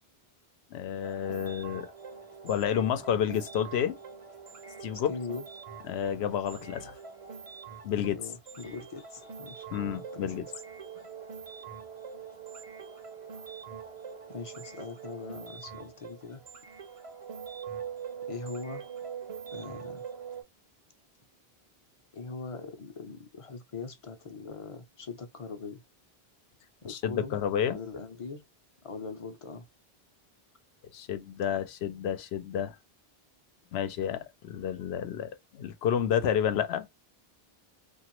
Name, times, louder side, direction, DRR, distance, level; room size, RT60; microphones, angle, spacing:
voice 1, 0.7-1.9 2.4-4.0 4.8-5.1 5.9-6.9 7.8-8.2 9.7-10.4 26.9-27.8 30.9-32.8 33.7-36.9, left 9 dB, 90° left, 0.8 m, -30 dB
sound 1, 1.0-20.4, right 6 dB, 40° right, 0.6 m, -44 dB
voice 2, 5.1-5.4 8.0-10.5 12.9-13.0 13.3-13.5 14.3-16.4 18.3-18.8 19.5-20.0 22.1-25.8 26.8-27.4 27.6-28.4 28.8-29.7, left 4 dB, 40° left, 0.5 m, -41 dB
2.9 x 2.4 x 2.9 m
omnidirectional pair, 1.0 m